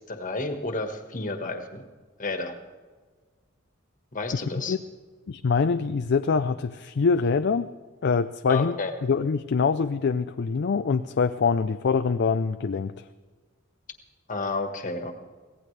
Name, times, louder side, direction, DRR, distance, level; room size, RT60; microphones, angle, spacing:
voice 1, 0.0-1.8 2.2-2.5 4.1-4.8 8.5-8.9 14.3-15.1, left 3 dB, 40° left, 6 dB, 1.6 m, -31 dB
voice 2, 4.3-4.8 5.3-7.7 8.0-8.7 9.0-13.0, left 5 dB, 55° left, 10 dB, 0.4 m, -24 dB
24.5 x 17.0 x 3.3 m, 1.4 s
head